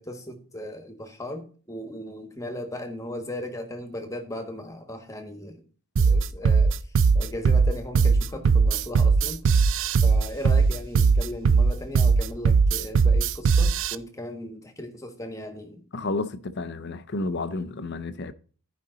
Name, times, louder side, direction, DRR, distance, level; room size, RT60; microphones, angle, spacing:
voice 1, 0.0-5.6 6.0-9.7 10.0-15.8, left 1 dB, 15° left, 1.3 m, -37 dB
sound 1, 6.0-14.0, right 5 dB, 60° right, 0.4 m, -19 dB
voice 2, 15.9-18.3, left 3 dB, 50° left, 0.6 m, -31 dB
13.5 x 5.2 x 3.9 m
head